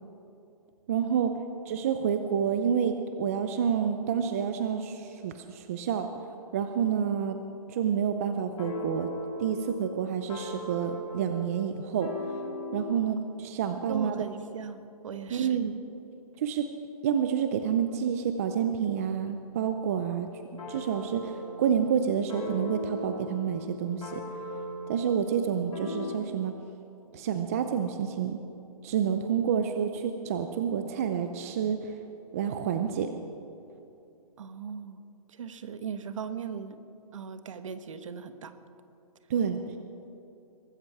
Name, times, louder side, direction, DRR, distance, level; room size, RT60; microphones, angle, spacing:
voice 1, 0.9-6.1 6.5-7.4 7.7-9.1 9.4-12.3 12.7-14.2 15.3-15.7 16.4-16.7 17.0-20.3 20.7-24.2 24.9-26.6 27.1-28.4 28.8-32.0 32.3-33.1 39.3-39.7, right 8 dB, 25° right, 7 dB, 0.5 m, -29 dB
sound 1, 8.4-13.1 20.6-26.1, left 1 dB, 70° left, 4.1 m, -39 dB
voice 2, 13.9-15.6 34.4-36.8 37.1-38.6, right 6 dB, 55° right, 10 dB, 1.2 m, -39 dB
22.5 x 13.0 x 4.8 m, 2.8 s
hypercardioid pair, 165°, 19 cm